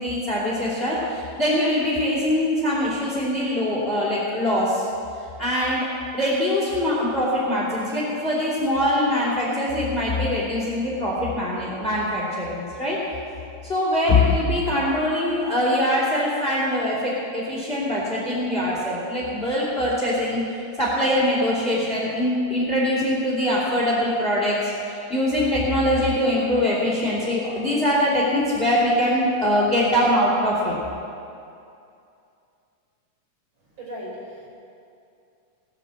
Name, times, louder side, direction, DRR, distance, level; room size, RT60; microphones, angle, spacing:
voice 1, 0.0-4.9 5.4-5.9 6.1-13.0 13.6-20.4 20.8-30.7, left 1 dB, 20° left, -6 dB, 2.8 m, -23 dB
voice 2, 33.8-34.5, equal, 35° right, -4 dB, 4.4 m, -36 dB
18.5 x 7.5 x 7.7 m, 2.6 s
omnidirectional pair, 3.9 m